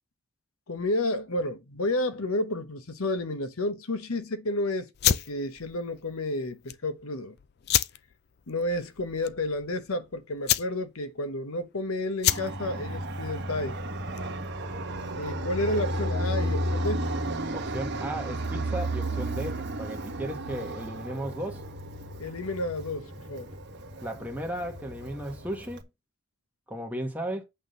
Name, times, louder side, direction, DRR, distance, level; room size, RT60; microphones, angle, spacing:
voice 1, 0.7-7.4 8.5-13.8 15.2-17.1 22.2-23.5, left 1 dB, 75° left, 1.0 m, -31 dB
sound 1, 4.9-14.5, left 11 dB, 45° left, 0.4 m, -31 dB
Fixed-wing aircraft airplane, 12.3-25.8, right 1 dB, 50° right, 1.5 m, -33 dB
voice 2, 17.5-21.7 24.0-25.9 26.7-27.4, right 1 dB, 5° right, 1.7 m, -35 dB
8.4 x 3.7 x 6.8 m
head